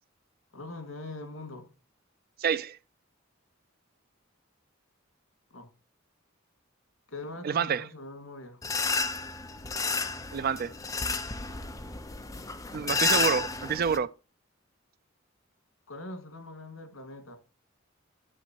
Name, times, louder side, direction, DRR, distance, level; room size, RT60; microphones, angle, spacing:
voice 1, 0.5-1.7 5.5-5.7 7.1-8.6 15.9-17.4, left 2 dB, 85° left, 2.0 m, -42 dB
voice 2, 2.4-2.8 7.4-7.9 10.3-10.7 12.7-14.1, right 6 dB, 50° right, 0.4 m, -28 dB
sound 1, 8.6-14.0, left 4 dB, 15° left, 0.7 m, -31 dB
11.0 x 7.1 x 2.9 m
head